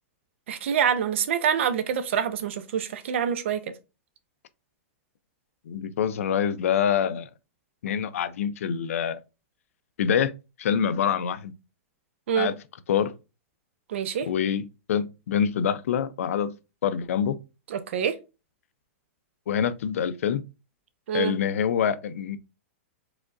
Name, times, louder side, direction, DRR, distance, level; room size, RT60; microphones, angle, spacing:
voice 1, 0.5-3.6 12.3-12.5 13.9-14.3 17.7-18.1 21.1-21.3, right 8 dB, 60° right, 0.7 m, -26 dB
voice 2, 5.7-7.3 7.8-9.2 10.0-10.3 10.6-11.5 12.4-12.6 12.9-13.1 14.3-16.5 16.8-17.4 19.5-20.4 21.1-22.4, left 8 dB, 75° left, 0.5 m, -25 dB
4.9 x 3.6 x 2.5 m
supercardioid pair, 175°, 8 cm